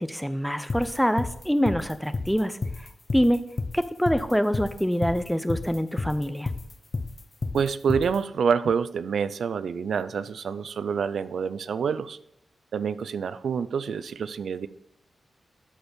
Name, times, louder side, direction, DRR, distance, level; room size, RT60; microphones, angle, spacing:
voice 1, 0.0-3.4 3.7-6.5, equal, ahead, 12 dB, 0.6 m, -25 dB
sound 1, 0.7-8.2, left 3 dB, 40° left, 0.6 m, -31 dB
voice 2, 7.5-12.2 12.7-14.7, right 6 dB, 80° right, 14 dB, 0.4 m, -27 dB
12.5 x 4.3 x 5.1 m, 0.77 s
wide cardioid pair, 90°, 0 cm